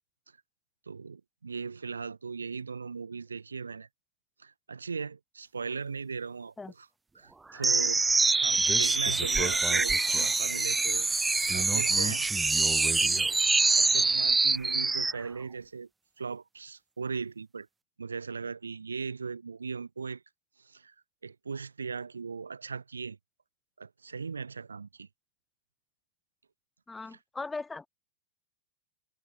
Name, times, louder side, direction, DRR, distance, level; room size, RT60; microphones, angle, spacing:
voice 1, 0.9-3.9 4.4-6.9 7.1-11.1 11.5-12.3 13.0-13.3 13.8-15.9 16.2-17.7 18.0-20.2 20.6-20.9 21.2-23.2 23.8-25.1, right 5 dB, 75° right, 0.6 m, -38 dB
sound 1, 7.6-15.2, right 3 dB, 10° right, 0.4 m, -25 dB
voice 2, 26.9-27.9, left 3 dB, 10° left, 0.8 m, -38 dB
figure-of-eight pair, 90°, 0 cm